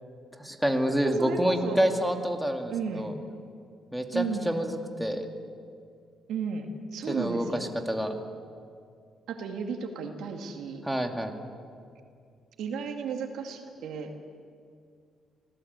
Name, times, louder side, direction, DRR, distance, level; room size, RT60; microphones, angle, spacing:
voice 1, 0.4-3.1 3.9-5.3 7.1-7.4 7.9-8.1 10.8-11.4, equal, ahead, 3 dB, 2.4 m, -27 dB
voice 2, 1.0-1.9 2.7-3.1 4.1-4.5 6.3-7.7 9.3-10.8 12.6-14.1, right 5 dB, 80° right, 4 dB, 2.3 m, -34 dB
26.5 x 18.0 x 8.3 m, 2.3 s
cardioid pair, 90°, 0 cm